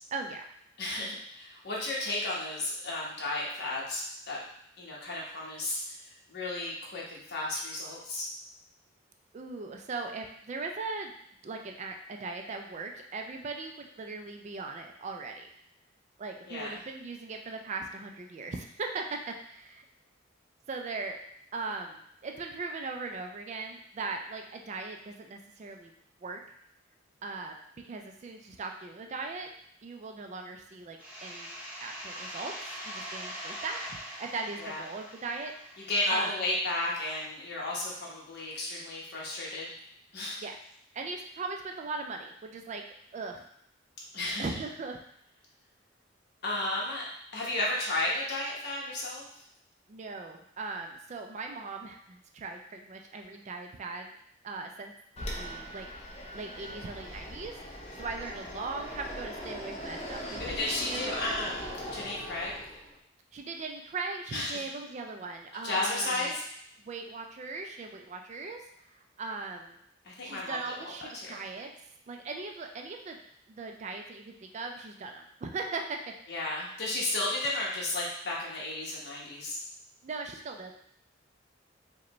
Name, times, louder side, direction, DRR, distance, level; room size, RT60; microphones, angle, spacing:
voice 1, 0.1-0.4 9.3-11.1 11.4-15.5 16.2-19.8 20.7-21.2 21.5-25.9 26.2-26.4 27.2-27.6 27.8-29.5 29.8-31.5 31.8-32.5 32.8-36.3 40.4-40.6 40.9-42.8 43.1-43.5 44.4-45.0 49.9-54.1 54.4-54.9 55.2-55.9 56.3-61.4 63.3-66.4 66.8-69.8 70.2-71.7 72.1-73.2 73.5-76.0 80.0-80.8, right 3 dB, 35° right, 3 dB, 0.3 m, -39 dB
voice 2, 0.8-4.4 4.8-8.3 16.5-16.8 34.6-34.8 35.9-39.7 40.1-40.4 44.1-44.5 46.4-47.0 47.3-49.4 60.4-62.5 64.3-64.6 65.6-66.4 70.0-71.4 76.3-79.6, left 2 dB, 55° left, -4 dB, 1.0 m, -33 dB
sound 1, 31.0-36.5, equal, 10° right, 0.7 m, -42 dB
Fixed-wing aircraft airplane, 55.2-62.9, equal, 35° left, 0.6 m, -40 dB
4.9 x 2.2 x 3.0 m, 0.70 s
head